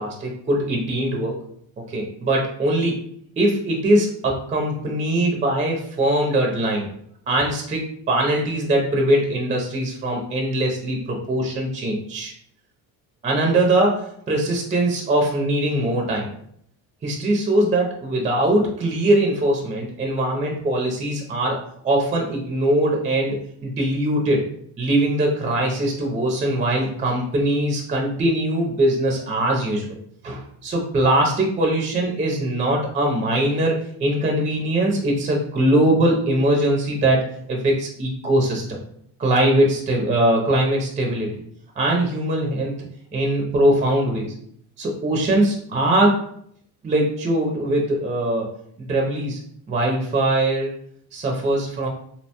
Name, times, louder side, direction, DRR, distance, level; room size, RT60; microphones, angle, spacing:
voice 1, 0.0-1.4 1.9-3.1 3.4-6.9 7.3-12.3 13.2-16.3 17.0-24.4 24.8-30.0 30.2-37.2 37.5-38.8 39.2-41.3 41.8-42.7 43.1-44.3 44.8-46.1 46.8-48.5 48.8-49.4 49.7-50.7 51.1-51.9, right 1 dB, 20° right, 0 dB, 0.4 m, -21 dB
2.7 x 2.1 x 2.7 m, 0.67 s
cardioid pair, 125°, 40 cm